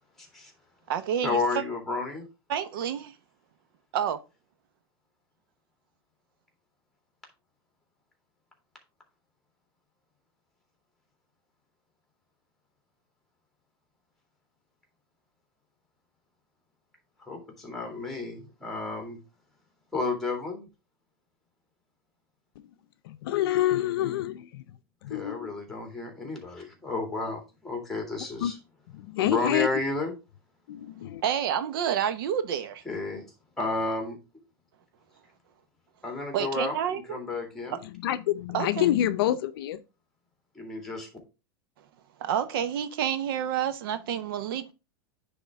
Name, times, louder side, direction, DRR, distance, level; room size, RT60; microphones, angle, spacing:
voice 1, 0.2-0.5 1.2-2.2 17.3-19.2 19.9-20.7 25.1-28.5 29.2-30.1 32.9-33.2 33.6-34.2 36.0-37.8 40.6-41.1, left 3 dB, ahead, 2.1 m, -32 dB
voice 2, 0.9-1.6 2.5-3.1 3.9-4.2 31.2-32.8 36.3-37.2 38.5-38.8 42.2-44.7, right 9 dB, 65° right, 0.8 m, -29 dB
voice 3, 23.0-24.6 25.0-25.5 28.4-28.5 28.9-29.7 30.7-31.2 37.8-39.8, left 13 dB, 65° left, 0.6 m, -27 dB
9.8 x 3.6 x 3.5 m
supercardioid pair, 145°, 13 cm